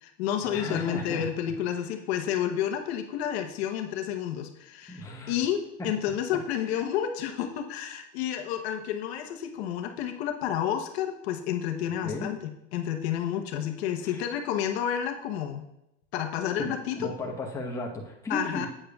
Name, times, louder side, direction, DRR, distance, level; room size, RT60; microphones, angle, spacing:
voice 1, 0.0-15.6 16.1-17.1 18.3-18.7, left 10 dB, 65° left, 5 dB, 1.0 m, -30 dB
voice 2, 0.5-1.2 4.9-5.4 12.0-12.3 14.0-14.3 16.6-18.7, left 2 dB, 10° left, -2 dB, 1.0 m, -35 dB
10.0 x 8.6 x 2.3 m, 0.86 s
supercardioid pair, 150°, 34 cm